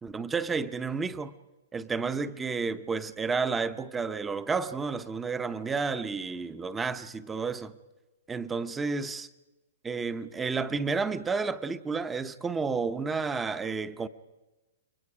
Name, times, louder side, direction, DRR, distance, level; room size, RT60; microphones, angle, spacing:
voice 1, 0.0-1.3 1.7-7.7 8.3-9.3 9.8-14.1, right 4 dB, 10° right, 0.8 m, -31 dB
29.0 x 23.0 x 4.9 m
hypercardioid pair, 145°, 0 cm